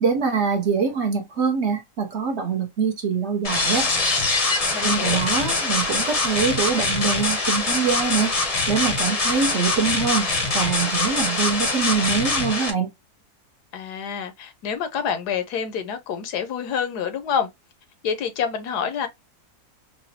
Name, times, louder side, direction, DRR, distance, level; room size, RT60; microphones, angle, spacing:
voice 1, 0.0-3.9 4.8-10.3 10.5-12.9, right 5 dB, 50° right, 0.9 m, -24 dB
sound 1, 3.4-12.7, left 3 dB, 35° left, 0.6 m, -23 dB
voice 2, 4.7-5.2 13.7-17.5 18.0-19.1, left 7 dB, 80° left, 1.3 m, -27 dB
4.9 x 2.2 x 2.7 m
omnidirectional pair, 1.7 m